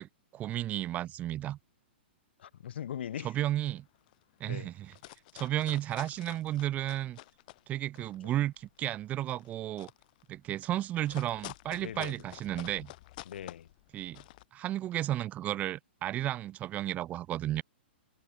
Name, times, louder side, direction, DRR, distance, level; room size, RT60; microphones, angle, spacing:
voice 1, 0.0-1.6 3.2-3.8 4.4-4.9 5.3-7.2 7.7-9.9 10.3-12.9 13.9-14.2 14.5-17.6, right 13 dB, 25° right, 0.9 m, -33 dB
voice 2, 2.4-3.3 4.5-4.7 8.2-8.3 11.8-12.1 13.3-13.7, left 10 dB, 70° left, 4.1 m, -40 dB
sound 1, 2.9-3.2 3.7-3.8 3.9-4.4 4.7-7.6 8.0-14.4, left 19 dB, 50° left, 2.0 m, -50 dB
hypercardioid pair, 135°, 6 cm